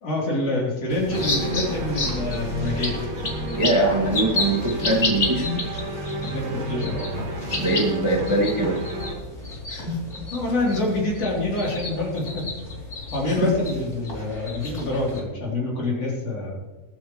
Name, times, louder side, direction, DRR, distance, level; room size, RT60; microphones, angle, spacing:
voice 1, 0.0-3.0 6.3-7.1 10.2-12.4 13.1-16.6, left 2 dB, 45° left, -3 dB, 4.3 m, -26 dB
sound 1, 0.9-15.2, left 2 dB, 25° left, 3.2 m, -31 dB
sound 2, 1.1-9.1, right 1 dB, 75° right, 3.8 m, -31 dB
voice 2, 3.6-5.6 7.5-8.8 9.7-10.0 13.3-13.5, right 1 dB, 10° right, -3 dB, 1.6 m, -23 dB
22.5 x 9.4 x 3.2 m, 1.2 s
omnidirectional pair, 4.0 m